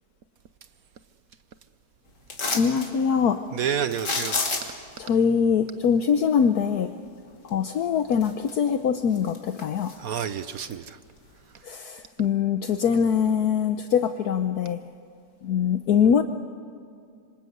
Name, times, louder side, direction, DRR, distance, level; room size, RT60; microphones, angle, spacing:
sound 1, 2.3-2.9 3.9-4.9 7.5-7.6 8.1-8.8 9.1-10.3 10.7-10.8, left 3 dB, 90° left, 3.4 m, -29 dB
voice 1, 2.5-3.4 5.0-6.9 7.4-9.9 11.6-14.8 15.4-16.2, left 7 dB, 70° left, 1.4 m, -23 dB
voice 2, 3.5-4.4 10.0-11.0, right 8 dB, 65° right, 1.2 m, -29 dB
26.5 x 25.5 x 8.0 m
omnidirectional pair, 1.8 m